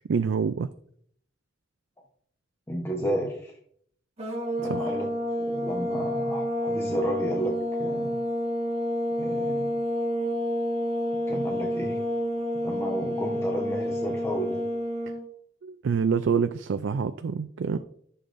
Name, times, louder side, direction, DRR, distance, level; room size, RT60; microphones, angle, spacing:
voice 1, 0.1-0.7 4.6-5.0 15.6-17.8, right 6 dB, 80° right, 10 dB, 0.4 m, -26 dB
voice 2, 2.7-3.5 4.6-5.1 5.5-8.2 9.2-9.7 11.3-12.0 12.6-14.6, equal, 15° left, -1 dB, 1.0 m, -32 dB
sound 1, 4.2-15.2, equal, 35° right, 1.6 m, -29 dB
14.0 x 6.9 x 2.6 m, 0.65 s
head